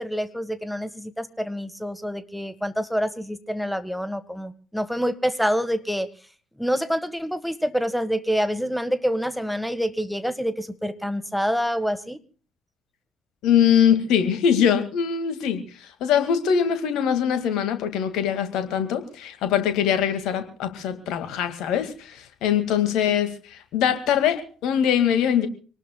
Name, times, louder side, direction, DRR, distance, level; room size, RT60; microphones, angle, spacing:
voice 1, 0.0-6.1 6.6-12.2, equal, ahead, 13 dB, 1.6 m, -27 dB
voice 2, 13.4-25.5, left 8 dB, 60° left, 9 dB, 2.1 m, -22 dB
26.0 x 19.0 x 2.3 m, 0.39 s
figure-of-eight pair, 50°, 0 cm